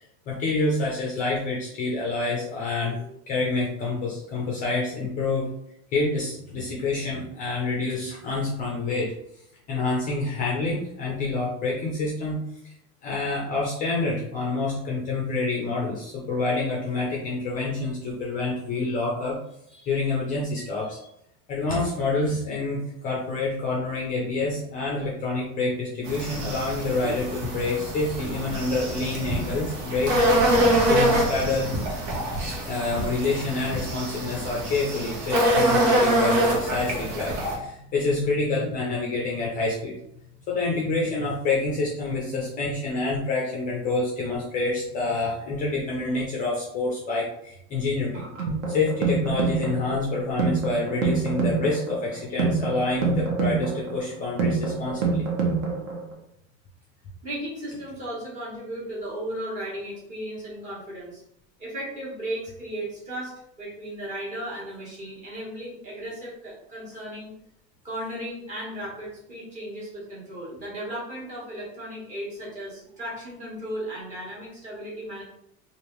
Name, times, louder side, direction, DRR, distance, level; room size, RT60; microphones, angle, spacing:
voice 1, 0.0-3.0 3.3-5.5 5.9-9.1 9.7-12.4 13.0-19.4 19.9-21.0 21.5-30.1 30.8-31.7 32.6-40.0 40.5-48.2 48.7-55.3, left 3 dB, 25° left, -3 dB, 0.4 m, -27 dB
voice 2, 19.7-20.0 57.2-61.2 61.6-67.3 67.8-75.2, right 1 dB, 20° right, -6 dB, 1.2 m, -35 dB
sound 1, 26.0-37.6, right 1 dB, 90° right, 1.2 m, -25 dB
sound 2, 48.1-56.1, right 4 dB, 50° right, 0.8 m, -26 dB
3.3 x 2.5 x 3.0 m, 0.76 s
cardioid pair, 175°, 33 cm